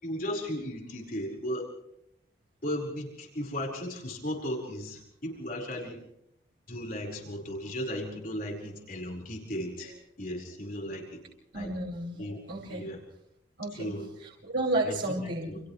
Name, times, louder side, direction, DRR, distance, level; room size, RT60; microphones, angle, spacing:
voice 1, 0.0-1.7 2.6-6.0 6.7-11.2 11.5-11.7 12.2-12.4 12.7-13.0 13.7-14.0 14.8-15.6, equal, 45° left, -1 dB, 4.8 m, -36 dB
voice 2, 11.5-12.9 13.6-13.9 14.2-15.6, right 1 dB, 90° right, -4 dB, 5.7 m, -32 dB
29.0 x 28.0 x 3.3 m, 0.77 s
head